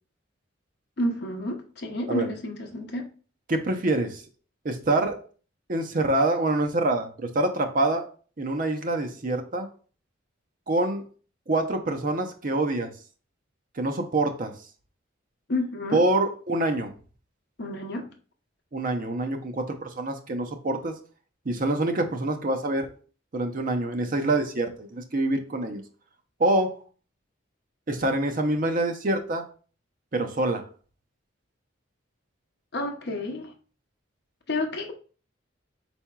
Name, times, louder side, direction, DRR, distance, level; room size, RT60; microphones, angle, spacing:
voice 1, 1.0-3.1 15.5-16.0 17.6-18.1 32.7-33.5 34.5-34.9, left 1 dB, 55° left, 4 dB, 0.8 m, -30 dB
voice 2, 3.5-4.2 4.6-5.2 5.7-8.0 8.4-9.7 10.7-11.0 11.5-12.9 13.7-14.5 15.9-16.9 18.7-21.0 21.5-22.9 23.3-25.8 26.4-26.7 27.9-29.4 30.1-30.6, right 2 dB, 40° right, 5 dB, 0.6 m, -26 dB
4.6 x 4.2 x 2.3 m, 0.40 s
head